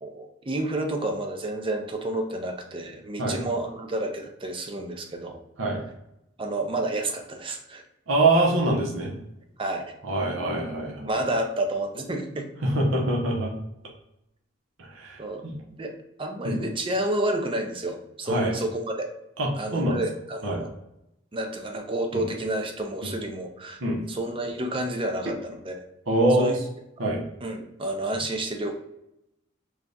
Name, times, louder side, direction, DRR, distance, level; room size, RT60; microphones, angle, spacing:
voice 1, 0.0-5.4 6.4-7.8 9.6-9.8 11.0-12.5 15.2-15.4 15.7-15.9 16.2-19.1 19.6-20.7 21.3-23.8 24.1-25.8 26.4-26.6 27.4-28.7, right 1 dB, 25° right, 3 dB, 0.5 m, -30 dB
voice 2, 8.1-9.1 10.0-11.2 12.6-13.5 14.8-15.5 16.4-16.6 18.3-18.5 19.4-20.0 20.4-20.6 22.1-22.2 23.0-23.1 23.8-24.0 26.1-26.5 27.0-27.2, right 2 dB, 80° right, -2 dB, 0.8 m, -24 dB
3.3 x 2.4 x 3.9 m, 0.85 s
head